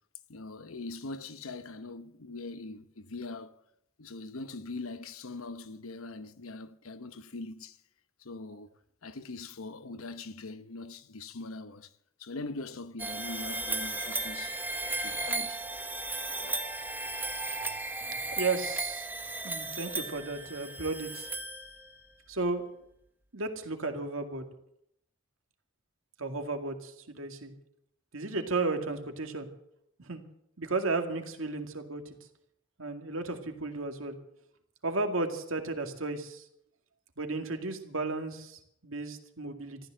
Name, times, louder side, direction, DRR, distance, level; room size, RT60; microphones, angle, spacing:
voice 1, 0.3-3.6 4.0-7.8 8.2-11.9 12.2-14.6 15.0-15.6, left 3 dB, 90° left, 1.0 m, -42 dB
sound 1, 13.0-22.1, right 2 dB, 10° right, 1.1 m, -35 dB
voice 2, 18.0-19.1 19.4-21.3 22.3-22.6 23.3-24.5 26.2-27.5 28.1-29.5 30.0-30.2 30.6-32.1 32.8-34.2 34.8-36.4 37.2-39.8, right 3 dB, 75° right, 2.2 m, -34 dB
14.5 x 13.0 x 7.7 m
head